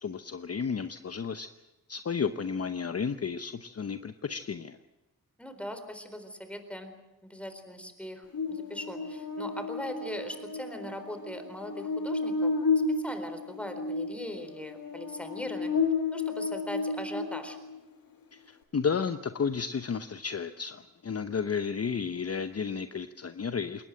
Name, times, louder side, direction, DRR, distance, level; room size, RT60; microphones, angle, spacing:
voice 1, 0.0-1.5 1.9-4.8 18.3-23.8, left 6 dB, 40° left, 10 dB, 0.9 m, -32 dB
voice 2, 5.4-7.0 7.2-12.5 12.9-15.7 16.1-17.6, equal, 5° left, 8 dB, 4.1 m, -40 dB
Buzz, 8.3-17.8, left 4 dB, 70° left, 2.9 m, -32 dB
21.0 x 19.0 x 7.8 m, 1.0 s
cardioid pair, 70°, 37 cm